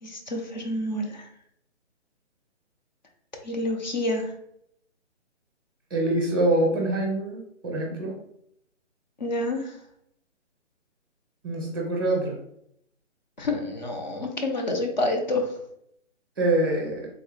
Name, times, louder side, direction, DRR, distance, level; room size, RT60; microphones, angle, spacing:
voice 1, 0.0-1.3 3.4-4.3 9.2-9.7 13.4-15.5, left 1 dB, 40° left, 3 dB, 0.7 m, -28 dB
voice 2, 5.9-8.2 11.4-12.4 16.4-17.1, right 1 dB, 20° right, -1 dB, 0.7 m, -25 dB
3.8 x 2.2 x 3.3 m, 0.72 s
hypercardioid pair, 175°, 36 cm